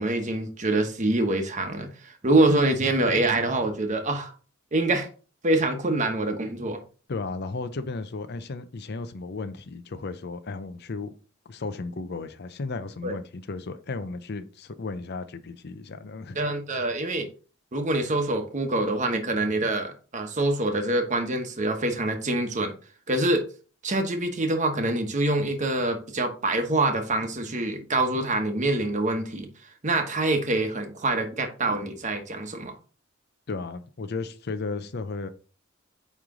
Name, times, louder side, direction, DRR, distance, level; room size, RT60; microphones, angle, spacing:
voice 1, 0.0-4.3 4.7-5.1 5.4-6.8 13.0-13.2 16.3-17.3 17.7-22.7 23.1-23.5 23.8-29.5 29.8-32.7, right 2 dB, 40° right, 1.1 m, -25 dB
voice 2, 7.1-11.1 11.5-16.4 33.5-35.3, left 3 dB, 55° left, 0.6 m, -34 dB
8.7 x 3.2 x 3.6 m
head